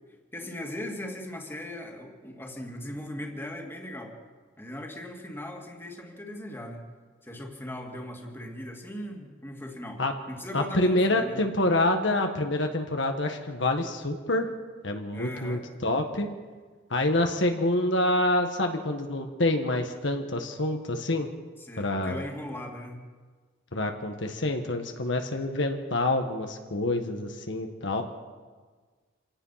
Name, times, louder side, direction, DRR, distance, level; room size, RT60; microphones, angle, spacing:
voice 1, 0.3-4.1 4.6-6.9 7.2-10.0 10.3-11.4 15.1-15.6 21.6-23.1, left 1 dB, 10° left, 1 dB, 2.5 m, -39 dB
voice 2, 10.5-14.5 14.8-16.3 16.9-21.3 21.8-22.2 23.7-28.0, left 1 dB, 65° left, 4 dB, 1.7 m, -27 dB
27.0 x 17.5 x 5.9 m, 1.5 s
head